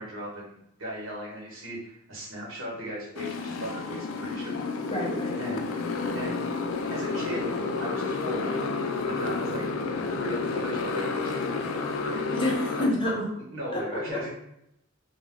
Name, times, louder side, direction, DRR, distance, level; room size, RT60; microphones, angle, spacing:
voice 1, 0.0-4.6 5.4-6.4 6.9-8.7 9.1-9.7 10.1-12.2 12.8-12.9 13.4-14.3, equal, 75° right, -5 dB, 1.0 m, -38 dB
Motorcycle, 3.2-12.9, left 4 dB, 90° left, 0.3 m, -30 dB
voice 2, 4.9-5.4 12.3-13.3 13.7-14.3, left 1 dB, 25° left, -3 dB, 0.6 m, -28 dB
2.3 x 2.1 x 3.4 m, 0.78 s
head